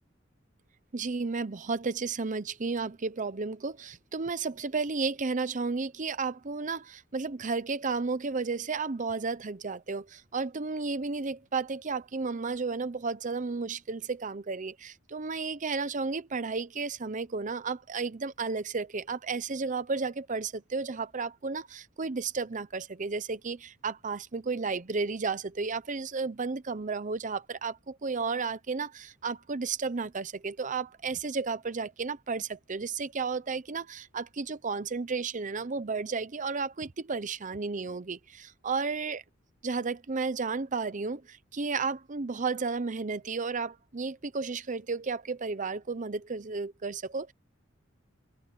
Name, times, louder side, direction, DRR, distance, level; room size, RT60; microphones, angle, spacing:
voice 1, 0.9-39.2 39.6-47.3, right 4 dB, 40° right, 0.7 m, -33 dB
head